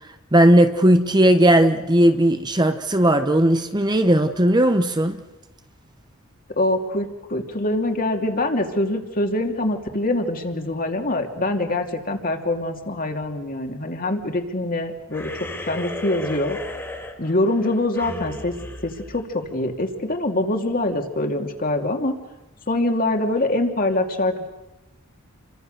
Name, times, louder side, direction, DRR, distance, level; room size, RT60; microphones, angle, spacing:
voice 1, 0.3-5.2, right 1 dB, 20° right, 8 dB, 1.1 m, -17 dB
voice 2, 6.6-15.3 15.7-16.6 17.2-18.5 18.8-22.1 22.7-24.5, left 1 dB, 40° left, 4 dB, 2.7 m, -24 dB
sound 1, 15.1-19.8, left 1 dB, 10° left, 2.9 m, -35 dB
29.5 x 24.5 x 6.7 m, 0.99 s
head